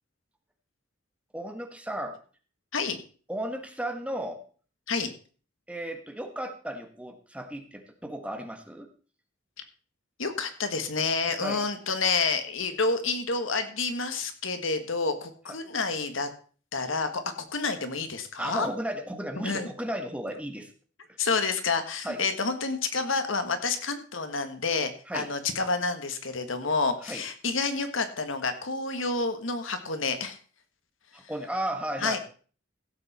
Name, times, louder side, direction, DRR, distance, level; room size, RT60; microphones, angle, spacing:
voice 1, 1.3-2.2 3.3-4.4 5.7-8.9 11.4-11.7 18.4-20.7 22.0-22.2 25.1-25.3 27.0-27.2 31.1-32.2, right 1 dB, 5° right, 6 dB, 1.4 m, -34 dB
voice 2, 10.2-16.3 16.7-17.2 17.5-18.7 19.4-19.7 21.2-30.4 32.0-32.2, left 4 dB, 85° left, 8 dB, 1.6 m, -29 dB
16.0 x 8.1 x 4.3 m, 0.41 s
head